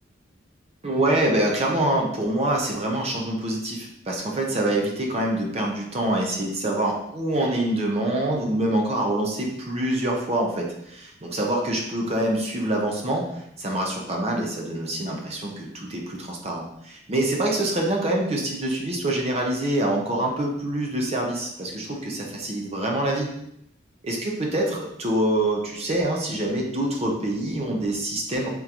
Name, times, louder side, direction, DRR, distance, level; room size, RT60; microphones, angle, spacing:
voice 1, 0.8-13.2 13.6-23.3 24.0-28.5, right 1 dB, 35° right, 0 dB, 0.6 m, -25 dB
3.6 x 3.6 x 2.9 m, 0.76 s
head